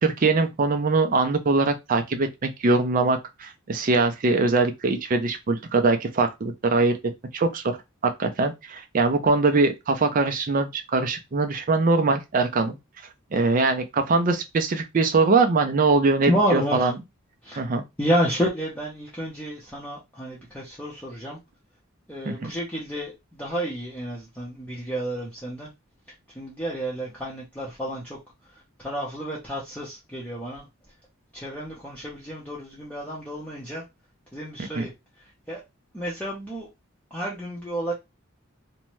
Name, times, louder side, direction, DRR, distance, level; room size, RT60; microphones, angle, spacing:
voice 1, 0.0-6.9 7.3-7.8 8.0-12.8 13.3-16.9 17.6-17.8 22.2-22.5 34.8-34.9, right 3 dB, 40° right, 0.4 m, -22 dB
voice 2, 16.3-16.9 17.4-17.6 18.0-21.4 22.1-25.7 26.3-28.2 28.8-30.7 31.3-33.8 34.3-34.9 35.5-35.6 35.9-36.7 37.1-37.9, equal, 5° left, 0.7 m, -30 dB
2.7 x 2.1 x 3.0 m
head